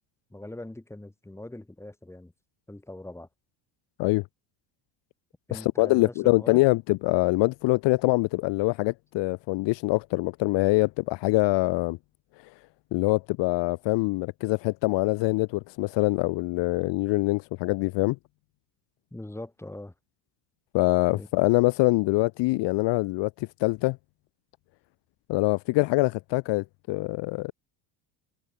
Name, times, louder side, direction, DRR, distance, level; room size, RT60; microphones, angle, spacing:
voice 1, 0.3-2.3 2.7-3.3 5.5-6.6 19.1-19.9 21.1-21.3, left 1 dB, 5° left, 6.0 m, -41 dB
voice 2, 5.5-12.0 12.9-18.2 20.7-24.0 25.3-27.5, left 23 dB, 70° left, 1.0 m, -24 dB
cardioid pair, 150°, 44 cm